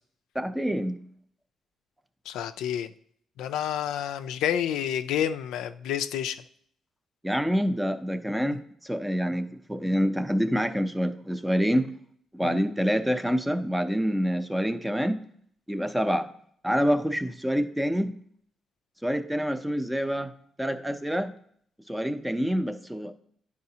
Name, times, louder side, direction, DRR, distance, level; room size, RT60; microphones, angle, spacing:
voice 1, 0.3-1.0 7.2-11.9 12.3-15.2 15.7-16.3 16.6-18.1 19.0-20.3 20.6-21.3 21.9-23.1, equal, 5° right, 9 dB, 0.5 m, -27 dB
voice 2, 2.3-2.9 3.4-6.4 8.5-8.6 12.4-12.6, left 10 dB, 90° left, 9 dB, 0.3 m, -29 dB
10.5 x 4.8 x 2.8 m, 0.64 s
cardioid pair, 90°, 0 cm